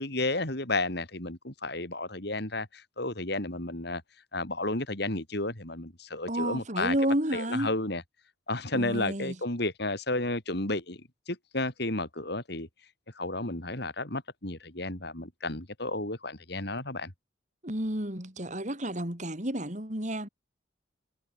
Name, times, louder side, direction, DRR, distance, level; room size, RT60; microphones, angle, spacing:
voice 1, 0.0-4.0 4.3-7.0 7.3-8.0 8.5-12.7 13.2-17.1, left 2 dB, 55° left, 4.2 m, -32 dB
voice 2, 6.3-7.7 8.7-9.4 17.6-20.3, right 1 dB, 40° right, 4.3 m, -31 dB
head